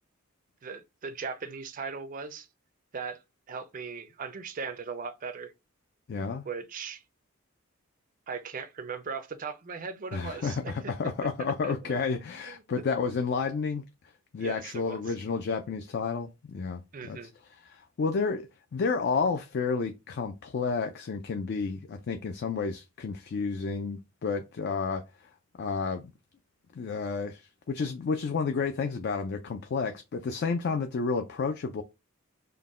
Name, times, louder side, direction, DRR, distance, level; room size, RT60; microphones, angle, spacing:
voice 1, 0.6-2.5 2.9-3.2 3.5-5.5 6.5-7.0 8.3-10.9 11.6-11.7 12.5-12.6 14.4-15.0 16.9-17.3, right 5 dB, 40° right, 0.4 m, -38 dB
voice 2, 6.1-6.5 10.1-13.9 14.3-17.2 17.5-25.3 25.6-26.1 26.7-31.8, left 5 dB, 50° left, 0.4 m, -31 dB
3.8 x 2.1 x 3.6 m
head